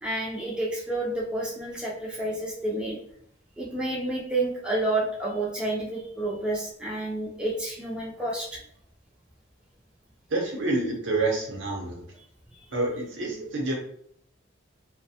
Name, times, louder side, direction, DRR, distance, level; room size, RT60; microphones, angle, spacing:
voice 1, 0.0-3.0 3.6-8.6, right 2 dB, 5° right, -5 dB, 0.3 m, -30 dB
voice 2, 10.3-12.1 12.7-13.7, right 2 dB, 70° right, -1 dB, 0.8 m, -28 dB
2.4 x 2.1 x 2.7 m, 0.67 s
head